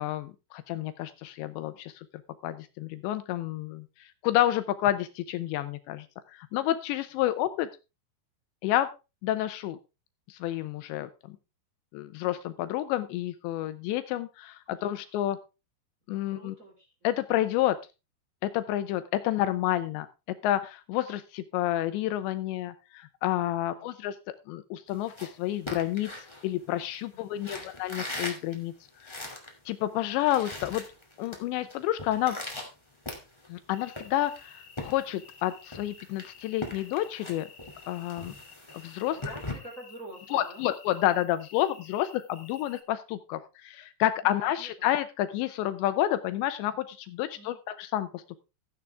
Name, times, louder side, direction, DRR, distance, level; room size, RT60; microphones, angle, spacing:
voice 1, 0.0-1.9 2.4-3.9 4.2-6.1 6.4-7.7 8.6-8.9 9.2-9.8 10.3-11.4 11.9-15.4 16.1-16.6 17.0-17.8 18.4-20.1 20.4-24.2 24.5-28.7 29.0-29.2 29.7-30.8 31.2-32.4 33.5-37.5 37.9-38.3 38.7-39.2 40.3-48.4, left 13 dB, 80° left, 11 dB, 2.9 m, -29 dB
voice 2, 16.1-16.9 18.8-18.9 23.7-23.9 27.1-27.7 39.0-40.6 44.2-44.3 44.6-44.9 47.3-47.6, right 1 dB, 15° right, -1 dB, 4.5 m, -48 dB
sound 1, 24.9-26.9 27.4-29.6 29.9-30.0 30.2-31.4 31.7-33.6 33.9-35.4 35.7-39.5, left 2 dB, 15° left, 0.9 m, -40 dB
sound 2, 33.7-42.8, left 5 dB, 45° left, 3.0 m, -53 dB
14.0 x 9.5 x 3.4 m, 0.28 s
omnidirectional pair, 5.2 m